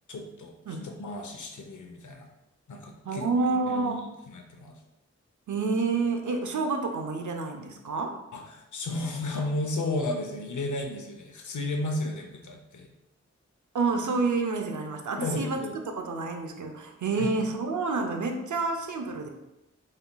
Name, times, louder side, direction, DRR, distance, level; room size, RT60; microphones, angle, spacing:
voice 1, 0.1-0.5 0.8-2.3 2.7-3.3 3.7-4.7 8.3-12.9 15.2-15.7 17.2-17.3, left 2 dB, 80° left, 3 dB, 0.7 m, -33 dB
voice 2, 3.0-4.0 5.5-8.2 13.7-19.3, right 3 dB, 80° right, 4 dB, 0.6 m, -29 dB
4.2 x 4.0 x 2.2 m, 0.93 s
wide cardioid pair, 50°, 30 cm